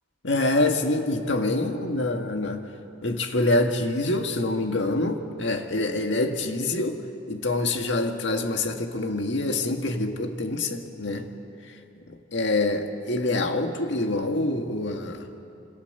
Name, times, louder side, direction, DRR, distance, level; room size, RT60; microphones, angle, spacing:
voice 1, 0.2-2.6 3.0-7.0 7.3-11.3 12.1-15.3, left 2 dB, 65° left, 4 dB, 1.9 m, -26 dB
27.0 x 26.5 x 6.9 m, 2.8 s
head